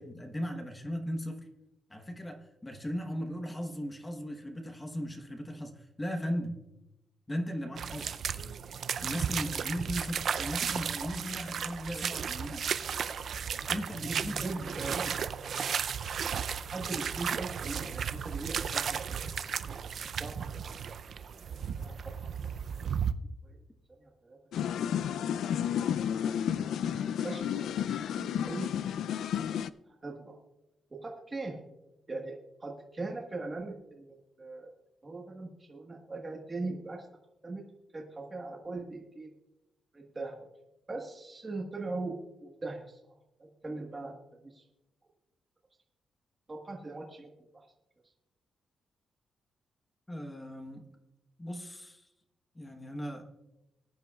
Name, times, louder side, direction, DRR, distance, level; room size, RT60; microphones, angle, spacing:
voice 1, 0.0-1.5 1.9-6.6 7.3-8.2 9.0-12.6 13.7-15.1 50.1-50.8 51.4-52.0 52.5-53.2, equal, 10° left, 4 dB, 1.1 m, -37 dB
sound 1, 7.8-23.1, right 7 dB, 50° right, 0.4 m, -34 dB
voice 2, 14.0-15.1 16.6-19.9 20.2-20.5 20.8-21.2 21.5-22.1 22.4-22.5 23.4-23.6 24.0-24.4 24.7-24.8 26.5-26.8 27.2-28.9 29.3-29.4 30.0-30.4 30.9-31.6 32.1-34.7 35.0-37.0 37.4-37.6 37.9-39.3 39.9-40.5 40.9-44.6 46.5-47.6, right 3 dB, 20° right, -1 dB, 1.4 m, -41 dB
sound 2, 24.5-29.7, left 9 dB, 80° left, 0.3 m, -31 dB
20.5 x 10.5 x 2.3 m, 0.95 s
wide cardioid pair, 165°, 0 cm